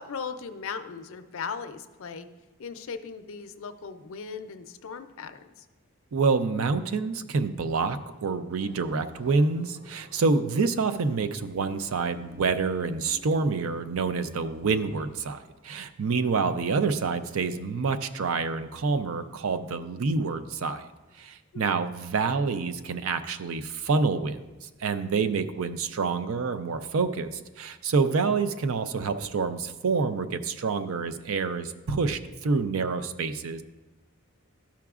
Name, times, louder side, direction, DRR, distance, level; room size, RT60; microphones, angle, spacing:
voice 1, 0.0-2.3 2.6-5.6 21.5-21.8, left 5 dB, 65° left, 9 dB, 0.4 m, -38 dB
voice 2, 6.1-20.8 21.2-33.6, right 4 dB, 70° right, 10 dB, 0.4 m, -27 dB
sound 1, 8.5-15.3, left 1 dB, 45° right, 2.0 m, -53 dB
13.0 x 5.9 x 2.4 m, 1.2 s
head